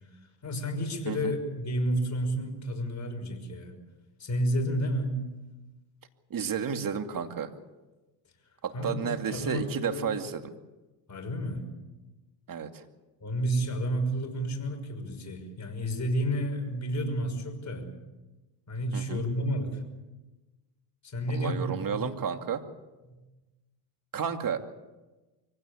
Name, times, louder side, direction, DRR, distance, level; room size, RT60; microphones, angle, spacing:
voice 1, 0.4-3.7 4.2-5.2 8.7-10.1 11.1-11.7 13.2-17.9 18.7-19.8 21.0-22.1 23.1-23.2, equal, 35° left, 3 dB, 6.1 m, -31 dB
voice 2, 6.3-7.5 8.6-10.5 12.5-12.9 18.9-19.2 21.3-22.6 24.1-24.6, right 7 dB, 40° right, 7 dB, 2.5 m, -32 dB
24.0 x 17.0 x 8.6 m, 1.1 s
supercardioid pair, 85°, 49 cm